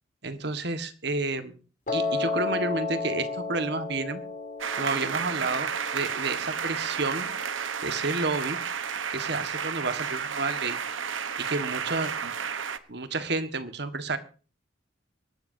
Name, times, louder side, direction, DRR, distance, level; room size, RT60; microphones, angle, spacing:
voice 1, 0.2-1.5 1.9-4.2 4.8-7.3 7.8-8.6 9.1-10.8 11.4-12.3 12.9-14.2, right 3 dB, 55° right, 9 dB, 1.6 m, -30 dB
Piano, 1.9-8.0, left 3 dB, 40° left, 3.2 m, -33 dB
sound 1, 4.6-12.8, right 7 dB, 80° right, 1.1 m, -32 dB
24.5 x 13.0 x 2.8 m, 0.37 s
head